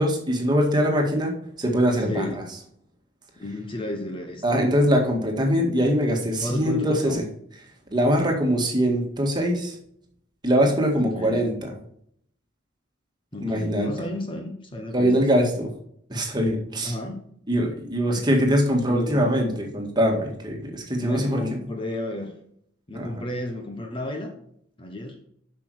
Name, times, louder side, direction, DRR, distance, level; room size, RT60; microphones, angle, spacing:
voice 1, 0.0-1.3 1.6-2.3 4.4-7.2 7.9-9.8 10.4-11.7 13.4-13.9 14.9-15.7 16.1-16.9 17.5-21.6 22.9-23.2, equal, 25° right, 1 dB, 1.9 m, -22 dB
voice 2, 2.1-2.4 3.4-4.6 6.4-7.2 10.9-11.5 13.3-15.3 16.8-17.3 18.1-18.3 18.9-19.3 21.0-22.3 22.9-24.3 24.8-25.2, left 1 dB, 25° left, 3 dB, 1.1 m, -32 dB
8.4 x 5.9 x 4.9 m, 0.68 s
head